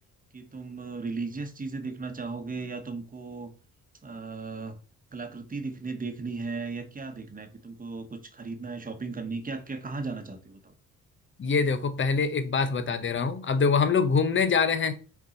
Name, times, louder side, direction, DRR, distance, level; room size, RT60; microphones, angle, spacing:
voice 1, 0.3-3.5 4.0-4.8 5.1-10.7, right 4 dB, 30° right, 1.3 m, -36 dB
voice 2, 11.4-14.9, left 5 dB, 40° left, 1.0 m, -24 dB
5.8 x 4.6 x 4.1 m
cardioid pair, 90°, 30 cm